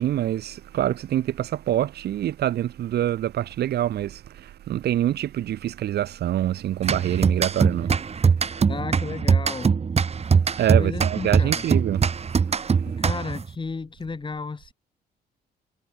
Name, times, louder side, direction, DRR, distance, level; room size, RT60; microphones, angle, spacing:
voice 1, 0.0-7.9 10.6-12.1, right 12 dB, 75° right, 3.7 m, -25 dB
sound 1, 6.8-13.5, right 6 dB, 40° right, 2.2 m, -22 dB
voice 2, 8.7-9.8 10.8-11.6 12.8-14.7, left 4 dB, 30° left, 4.0 m, -33 dB
cardioid pair, 80°, 17 cm